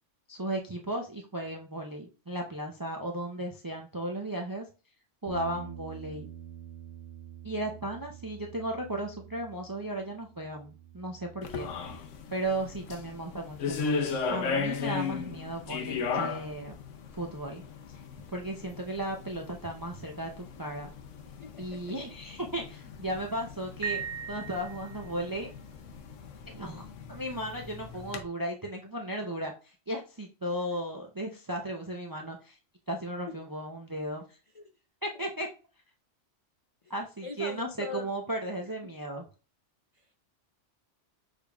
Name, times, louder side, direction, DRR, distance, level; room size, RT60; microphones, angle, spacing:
voice 1, 0.3-4.7 5.2-6.3 7.4-12.0 12.3-16.8 17.1-17.6 18.3-20.9 21.6-25.5 26.5-32.6 32.9-34.4 35.0-35.5 36.9-39.2, right 1 dB, 35° right, 0.3 m, -35 dB
Bass guitar, 5.3-11.5, right 9 dB, 65° right, 0.9 m, -47 dB
sound 1, 11.4-28.2, left 5 dB, 85° left, 1.0 m, -37 dB
voice 2, 21.2-21.9 33.3-33.4 34.5-34.7 36.8-36.9 37.2-38.1 39.9-40.2, left 5 dB, 55° left, 0.3 m, -42 dB
Piano, 23.8-25.3, right 8 dB, 85° right, 1.2 m, -37 dB
6.4 x 3.5 x 2.3 m
omnidirectional pair, 1.2 m